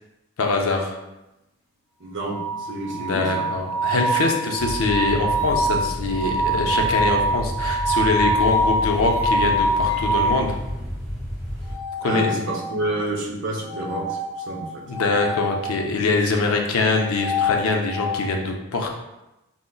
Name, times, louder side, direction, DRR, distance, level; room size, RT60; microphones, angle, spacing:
voice 1, 0.4-1.0 2.9-10.6 12.0-12.4 14.9-18.9, left 3 dB, 70° left, 2 dB, 0.5 m, -23 dB
voice 2, 2.0-3.5 12.0-14.2 14.5-14.8, right 1 dB, 55° right, -3 dB, 0.6 m, -29 dB
sound 1, 2.3-10.4 11.6-12.9 13.7-15.6 16.8-18.2, right 1 dB, 35° left, 0.8 m, -25 dB
sound 2, 4.6-11.7, equal, ahead, 1.4 m, -31 dB
5.0 x 2.0 x 2.2 m, 0.95 s
head